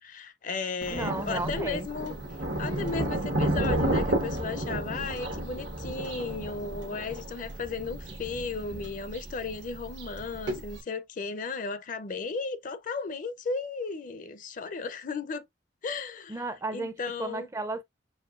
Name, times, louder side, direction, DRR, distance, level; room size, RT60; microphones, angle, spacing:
voice 1, 0.0-2.1 2.6-15.5 15.8-16.3 16.7-17.5, left 4 dB, 45° left, 0.5 m, -35 dB
Thunder, 0.8-10.8, right 1 dB, 80° right, 1.2 m, -32 dB
voice 2, 0.9-2.2 16.3-17.8, right 2 dB, 15° right, 0.4 m, -34 dB
6.3 x 2.8 x 2.4 m
head